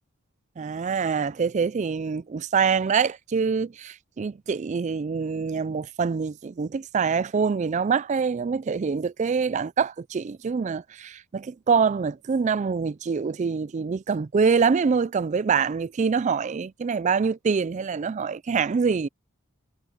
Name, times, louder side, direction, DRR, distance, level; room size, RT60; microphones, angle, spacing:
voice 1, 0.6-19.1, right 5 dB, 35° right, 0.3 m, -25 dB
head